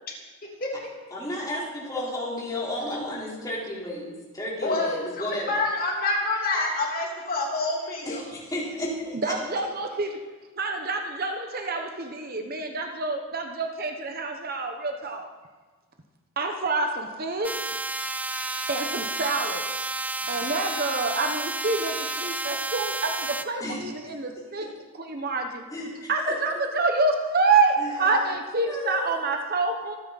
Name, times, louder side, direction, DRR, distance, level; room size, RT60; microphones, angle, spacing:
voice 1, 1.1-5.5 8.0-9.4 20.2-20.3 23.6-23.8 24.4-24.7 25.7-26.6 27.8-28.0 28.7-29.2, left 1 dB, 15° left, -6 dB, 4.0 m, -33 dB
voice 2, 5.2-8.2, left 2 dB, 40° left, -2 dB, 3.0 m, -27 dB
voice 3, 9.1-10.2 10.6-15.3 16.4-17.8 18.7-19.8 20.3-24.7 25.0-25.6 26.1-30.0, right 3 dB, 40° right, 4 dB, 1.1 m, -27 dB
sound 1, 17.4-23.4, right 2 dB, 5° right, 0.3 m, -31 dB
25.5 x 9.6 x 4.2 m, 1.3 s
head